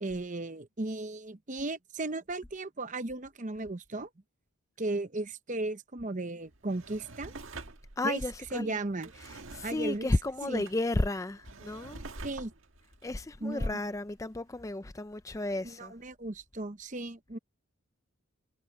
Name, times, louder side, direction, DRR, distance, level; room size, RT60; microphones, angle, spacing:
voice 1, 0.0-4.1 4.8-7.3 8.0-8.2 8.5-9.1 9.6-10.1 10.4-10.6 12.2-12.5 13.4-13.8 15.6-17.4, right 2 dB, 35° right, 0.8 m, -35 dB
Drawer open or close, 6.5-14.2 14.6-14.7, right 3 dB, 65° right, 1.8 m, -48 dB
voice 2, 8.0-8.8 9.5-12.0 13.0-15.9, left 2 dB, 15° left, 0.4 m, -32 dB
head